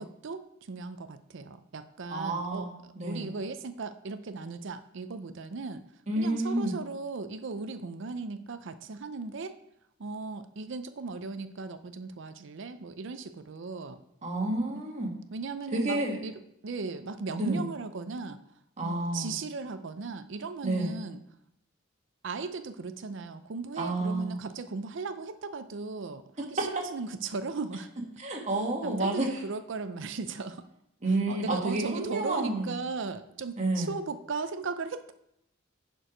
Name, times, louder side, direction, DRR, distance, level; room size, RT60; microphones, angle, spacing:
voice 1, 0.0-2.7 3.0-5.8 6.2-9.6 10.0-14.0 14.7-14.8 15.3-16.3 16.6-18.4 18.8-21.2 22.2-27.9 28.8-30.7 31.3-35.1, right 4 dB, 65° right, 11 dB, 0.5 m, -37 dB
voice 2, 2.1-3.3 6.1-6.8 14.2-15.1 15.7-16.2 17.4-17.7 18.8-19.3 20.6-21.0 23.8-24.4 26.6-26.7 28.2-29.4 31.0-32.8 33.6-33.9, right 2 dB, 35° right, 0 dB, 1.7 m, -30 dB
11.0 x 4.6 x 5.0 m, 0.78 s
head